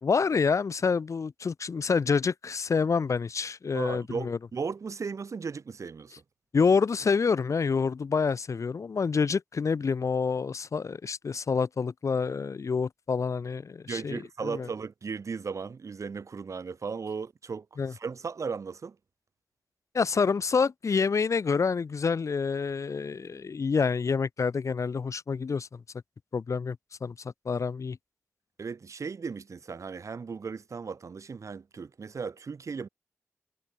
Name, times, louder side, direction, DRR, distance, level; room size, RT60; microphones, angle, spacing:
voice 1, 0.0-4.4 6.5-14.7 17.8-17.9 19.9-25.8 26.3-27.1 27.5-28.0, left 5 dB, 80° left, 4.1 m, -27 dB
voice 2, 3.7-6.2 13.9-19.0 28.6-32.9, right 5 dB, 85° right, 5.9 m, -36 dB
cardioid pair, 55°, 5 cm